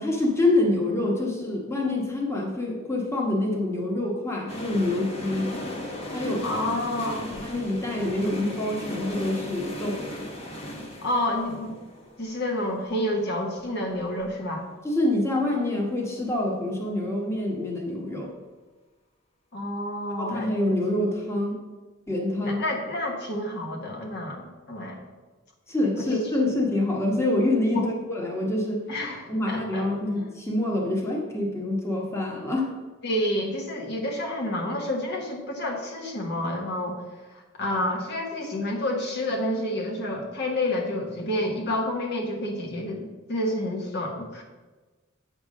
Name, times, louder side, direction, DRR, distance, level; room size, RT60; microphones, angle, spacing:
voice 1, 0.0-5.5 6.1-6.4 7.0-10.0 14.8-18.3 20.2-21.6 22.1-22.6 25.7-28.8 29.3-32.7, left 1 dB, 15° left, -2 dB, 1.2 m, -26 dB
sound 1, 4.5-14.3 14.6-14.7, left 1 dB, 30° left, 1.2 m, -37 dB
voice 2, 6.4-7.3 11.0-11.7 12.2-14.6 19.5-20.5 22.4-25.0 26.0-26.2 27.7-27.9 28.9-30.2 33.0-37.0 37.6-44.4, left 1 dB, 55° left, 0 dB, 1.3 m, -29 dB
8.5 x 3.5 x 6.4 m, 1.2 s
head